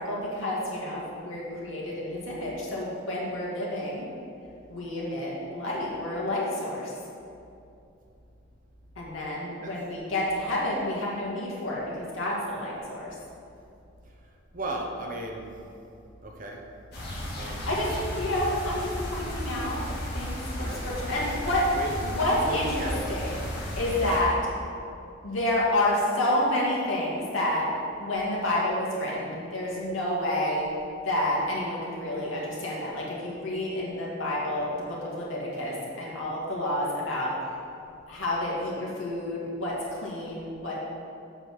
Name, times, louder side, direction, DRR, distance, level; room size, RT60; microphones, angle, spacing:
voice 1, 0.0-4.1 4.7-6.9 9.0-13.1 17.4-17.9 18.2-19.8 20.1-21.7 22.0-23.4 23.8-24.3 25.2-27.7 28.0-30.7 31.0-37.3 38.1-39.7 40.0-40.7, left 1 dB, 75° left, -5 dB, 2.2 m, -29 dB
voice 2, 14.5-15.5 16.2-16.6 17.4-17.7 20.6-20.8 21.1-21.3 21.7-22.0 22.3-23.1 24.0-24.2, right 2 dB, 40° right, 1 dB, 1.0 m, -35 dB
sound 1, 16.9-24.2, equal, 55° left, 2.1 m, -34 dB
7.8 x 5.5 x 6.3 m, 2.6 s
head